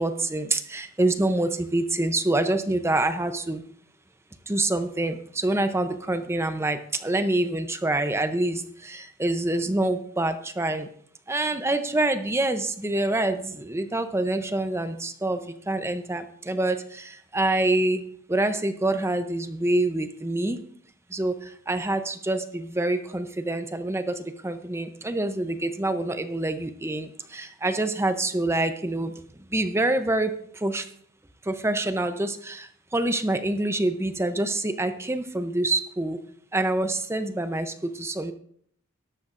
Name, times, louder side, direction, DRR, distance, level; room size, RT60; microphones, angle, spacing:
voice 1, 0.0-3.6 4.5-10.9 11.3-15.4 15.7-18.0 18.3-20.6 21.1-21.4 21.7-24.2 24.4-29.1 29.5-30.3 30.6-30.8 31.5-32.7 32.9-36.2 36.5-38.3, right 2 dB, 10° right, 9 dB, 0.6 m, -26 dB
13.0 x 12.0 x 2.5 m, 0.63 s
head